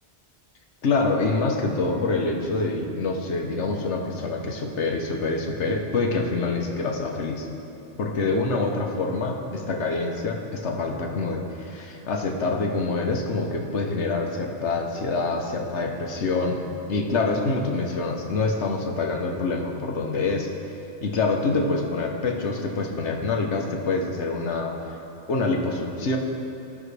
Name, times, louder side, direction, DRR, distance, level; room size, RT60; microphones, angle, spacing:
voice 1, 0.8-7.5 8.0-16.6 16.9-20.5 21.0-24.7 25.3-26.2, left 3 dB, 85° left, 2 dB, 1.3 m, -26 dB
16.5 x 6.1 x 3.3 m, 2.9 s
omnidirectional pair, 1.1 m